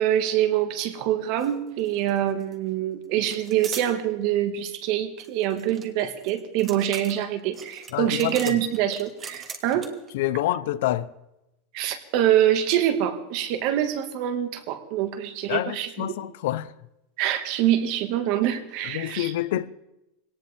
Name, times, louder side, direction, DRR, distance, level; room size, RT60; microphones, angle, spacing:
voice 1, 0.0-9.9 11.7-16.1 17.2-19.3, right 11 dB, 45° right, 1.8 m, -25 dB
sound 1, 1.4-1.5 1.8-2.5 3.2-3.9 5.2-10.1, right 6 dB, 20° right, 1.4 m, -40 dB
voice 2, 7.9-8.6 10.1-11.1 15.5-16.7 18.8-19.7, left 14 dB, 70° left, 0.7 m, -27 dB
22.0 x 18.0 x 3.5 m
supercardioid pair, 170°, 0 cm